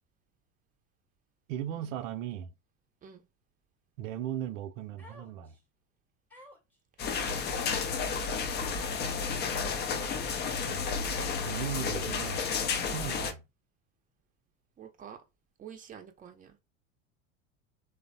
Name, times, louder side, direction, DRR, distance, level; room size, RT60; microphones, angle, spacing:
voice 1, 1.5-2.5 4.0-5.6 10.7-10.8 11.4-12.5 12.8-13.5, right 11 dB, 65° right, 0.6 m, -37 dB
Human voice, 5.0-5.6 6.3-6.7 7.3-7.9 8.6-9.0 9.6-10.1 10.8-10.9 12.1-12.7, left 1 dB, 5° left, 1.0 m, -52 dB
sound 1, 7.0-13.3, left 5 dB, 25° left, 0.5 m, -32 dB
voice 2, 7.9-9.4 14.8-15.2 15.6-16.6, right 8 dB, 20° right, 0.6 m, -50 dB
3.1 x 2.0 x 2.6 m
hypercardioid pair, 80°, 40 cm